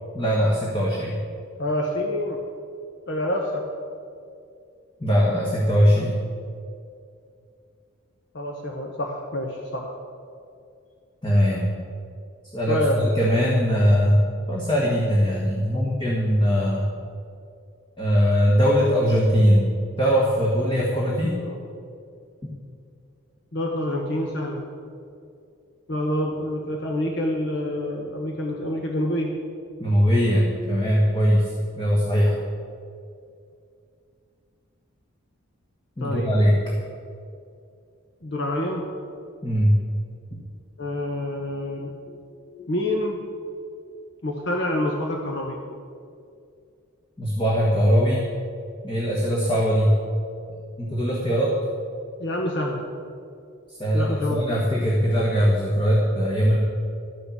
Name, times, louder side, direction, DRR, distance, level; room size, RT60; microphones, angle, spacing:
voice 1, 0.1-1.2 5.0-6.2 11.2-11.7 12.5-14.2 14.5-16.9 18.0-19.7 20.0-21.4 29.8-32.3 36.0-36.6 39.4-39.8 42.1-42.2 42.5-42.7 47.2-48.2 48.8-49.9 50.8-51.5 53.7-56.6, equal, 20° left, -4 dB, 1.5 m, -21 dB
voice 2, 1.6-2.4 3.1-3.6 8.3-10.0 12.7-12.9 21.4-21.6 23.5-24.6 25.9-29.3 36.0-36.3 38.2-38.8 40.8-41.9 42.7-43.2 44.2-45.6 52.2-52.8 53.9-54.4, left 1 dB, 55° left, 1 dB, 1.0 m, -27 dB
12.0 x 6.7 x 8.6 m, 2.4 s
head